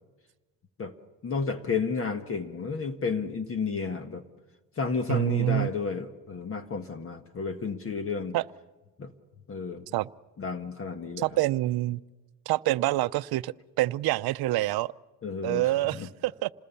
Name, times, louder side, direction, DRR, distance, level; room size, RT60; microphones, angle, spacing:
voice 1, 1.2-4.2 4.8-8.4 9.0-9.1 9.5-9.9 10.4-11.3 15.2-16.1, left 5 dB, 30° left, 9 dB, 1.5 m, -32 dB
voice 2, 5.1-5.7 8.3-8.4 9.9-10.1 11.2-12.0 12.5-14.9 15.4-16.5, right 16 dB, 60° right, 13 dB, 0.7 m, -26 dB
27.5 x 20.5 x 7.1 m, 1.2 s
cardioid pair, 120°, 42 cm